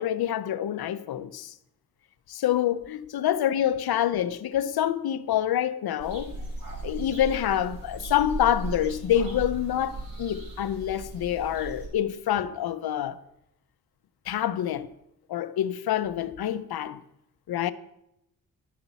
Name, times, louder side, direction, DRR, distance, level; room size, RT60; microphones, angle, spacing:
voice 1, 0.0-1.5 2.3-6.3 6.8-13.2 14.3-14.9 15.3-17.0 17.5-17.7, left 11 dB, 80° left, 0.8 m, -27 dB
sound 1, 6.0-11.9, right 3 dB, 65° right, 4.5 m, -37 dB
12.0 x 7.2 x 6.9 m
wide cardioid pair, 130°, 37 cm